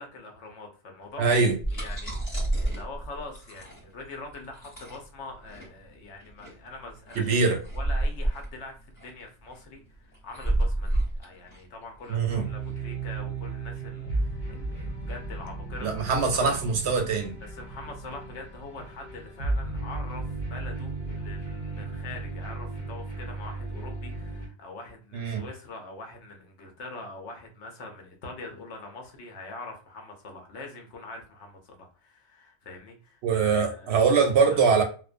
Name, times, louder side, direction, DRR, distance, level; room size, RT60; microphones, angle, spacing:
voice 1, 0.0-1.4 1.7-7.4 7.7-16.6 17.4-34.1 34.5-34.6, left 3 dB, 75° left, 1.0 m, -43 dB
voice 2, 1.2-1.6 7.2-7.6 12.1-12.5 15.8-17.3 25.1-25.4 33.2-34.8, right 5 dB, 70° right, 0.8 m, -23 dB
sound 1, 1.6-12.7, right 1 dB, 30° left, 1.3 m, -31 dB
sound 2, 12.3-24.5, right 3 dB, 50° left, 1.3 m, -35 dB
2.5 x 2.1 x 2.4 m
omnidirectional pair, 1.2 m